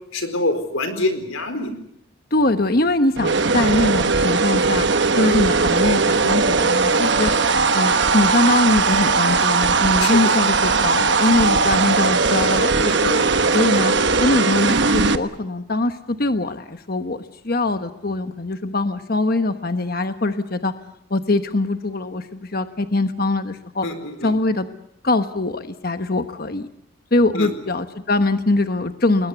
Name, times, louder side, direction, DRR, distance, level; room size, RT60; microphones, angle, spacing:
voice 1, 0.1-1.7 6.9-7.1 10.0-10.3 11.4-11.6 12.8-13.3 23.8-23.9 24.2-24.3 27.4-27.5, left 2 dB, 80° left, 9 dB, 4.4 m, -26 dB
voice 2, 2.3-4.9 5.2-7.3 7.7-13.1 13.5-13.9 14.2-20.7 21.1-23.9 24.2-24.7 25.0-26.7 27.1-29.3, left 2 dB, 45° left, 9 dB, 1.2 m, -22 dB
sound 1, 3.2-15.2, right 4 dB, 55° right, 1.2 m, -19 dB
30.0 x 21.0 x 8.3 m, 0.74 s
head